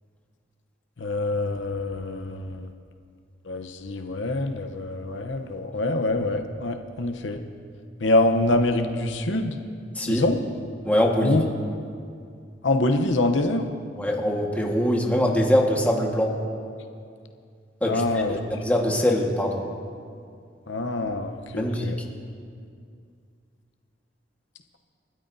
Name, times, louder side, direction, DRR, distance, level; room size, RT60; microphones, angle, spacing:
voice 1, 1.0-2.7 3.5-7.4 8.0-9.6 10.1-10.4 11.2-11.4 12.6-13.7 17.8-18.4 20.7-21.9, left 2 dB, 80° left, 5 dB, 0.9 m, -25 dB
voice 2, 9.9-10.3 10.8-11.4 14.0-16.3 17.8-19.7 21.5-21.9, equal, 10° left, -1 dB, 1.5 m, -23 dB
30.0 x 12.5 x 2.7 m, 2.3 s
head